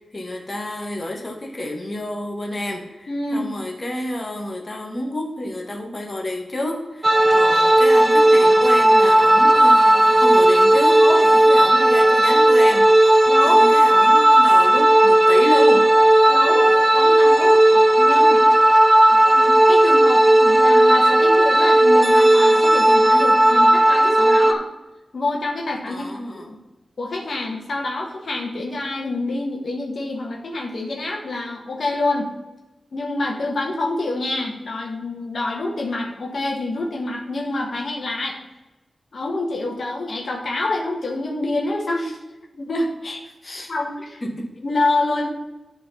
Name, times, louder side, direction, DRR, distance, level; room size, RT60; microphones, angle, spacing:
voice 1, 0.0-11.0 11.5-12.9 13.5-15.9 25.9-26.5 43.4-43.7 44.2-44.5, left 1 dB, 30° left, 0 dB, 1.5 m, -29 dB
voice 2, 3.1-3.5 11.0-11.3 13.3-13.6 16.3-18.4 19.1-24.7 25.1-26.6 27.0-32.3 32.9-38.4 39.1-42.2 42.5-43.2 43.7-44.2 44.6-45.3, left 2 dB, 65° left, 0 dB, 1.3 m, -27 dB
sound 1, 7.0-24.5, right 1 dB, 25° right, 0.4 m, -14 dB
10.5 x 3.9 x 4.2 m, 1.1 s
wide cardioid pair, 90°, 0 cm